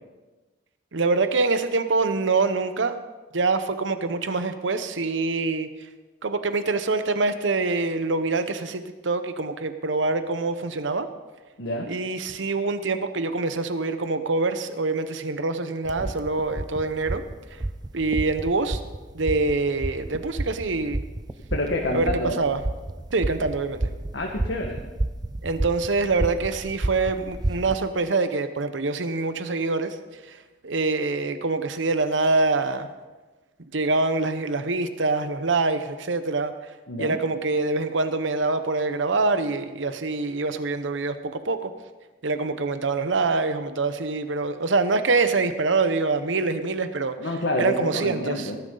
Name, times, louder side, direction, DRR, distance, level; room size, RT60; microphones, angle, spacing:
voice 1, 0.9-2.9 3.3-5.7 6.2-11.1 11.9-17.2 17.5-17.6 17.9-18.8 19.1-21.0 21.9-22.6 23.1-23.9 25.4-32.9 33.6-36.7 37.0-41.7 42.2-48.5, right 3 dB, 85° right, 10 dB, 0.9 m, -25 dB
sound 1, 15.8-27.8, right 2 dB, 20° right, 0.4 m, -31 dB
voice 2, 21.5-22.4 24.1-24.8 36.9-37.2 47.2-48.6, left 1 dB, 80° left, 0 dB, 1.5 m, -27 dB
18.5 x 11.5 x 3.9 m, 1.2 s
head